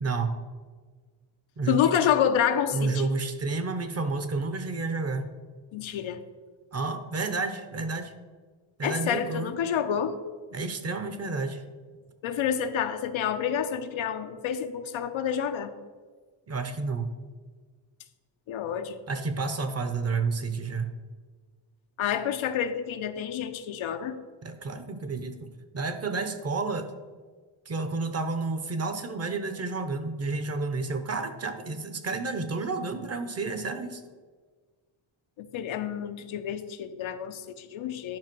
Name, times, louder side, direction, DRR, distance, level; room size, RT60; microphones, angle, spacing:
voice 1, 0.0-0.3 1.6-1.8 2.7-5.3 6.7-8.1 8.8-9.5 10.5-11.6 16.5-17.1 19.1-20.9 24.4-25.5 25.7-26.9 27.7-34.0, right 3 dB, 30° right, 9 dB, 0.8 m, -30 dB
voice 2, 1.7-3.1 5.7-6.2 8.8-10.2 12.2-15.7 18.5-19.0 22.0-24.2 35.4-38.2, left 8 dB, 90° left, 8 dB, 0.9 m, -28 dB
10.5 x 5.7 x 6.1 m, 1.5 s
wide cardioid pair, 160°, 46 cm